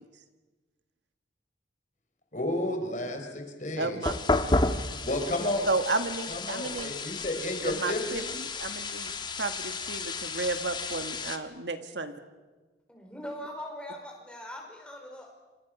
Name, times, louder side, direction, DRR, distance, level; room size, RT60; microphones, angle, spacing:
voice 1, 2.3-4.0 5.0-5.7 6.3-8.3, left 1 dB, 40° left, 4 dB, 4.2 m, -32 dB
voice 2, 3.8-4.4 5.7-6.9 7.6-12.1, right 3 dB, 80° right, 8 dB, 1.8 m, -33 dB
sound 1, 4.0-11.4, left 2 dB, 25° left, 1.3 m, -32 dB
voice 3, 12.9-15.3, left 1 dB, 5° left, 0 dB, 4.8 m, -41 dB
28.0 x 26.0 x 6.3 m, 1.3 s
head